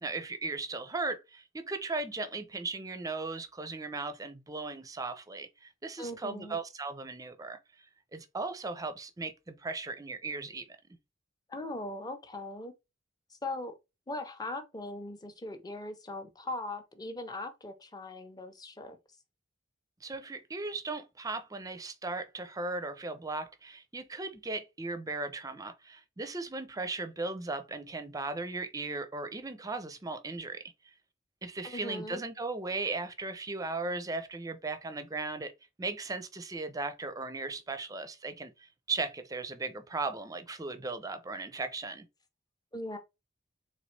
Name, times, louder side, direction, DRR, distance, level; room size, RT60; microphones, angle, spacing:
voice 1, 0.0-7.6 8.1-10.7 20.0-30.6 31.4-35.5 35.8-42.1, right 3 dB, 20° right, 0.5 m, -37 dB
voice 2, 6.0-6.6 11.5-12.7 13.4-13.7 14.1-19.0 31.6-32.2 42.7-43.0, left 2 dB, 20° left, 0.7 m, -39 dB
4.0 x 3.2 x 3.2 m
head